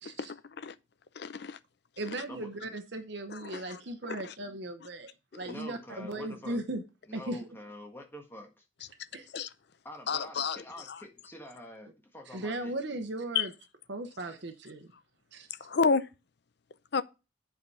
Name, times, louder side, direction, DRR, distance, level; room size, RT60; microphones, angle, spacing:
voice 1, 0.0-0.3 2.0-6.8 7.1-7.5 9.1-9.3 12.3-13.5 13.9-14.9 15.3-15.5, right 2 dB, 60° right, 0.9 m, -37 dB
voice 2, 1.2-1.6 3.3-3.6 4.1-4.3 5.3-5.4 9.3-9.5 10.1-10.6 10.9-11.0 13.3-13.5 15.6-16.0 16.9-17.0, left 5 dB, 55° left, 0.5 m, -29 dB
voice 3, 5.4-6.6 7.1-8.6 9.8-12.7, left 1 dB, 10° left, 1.6 m, -46 dB
7.9 x 4.8 x 5.6 m
head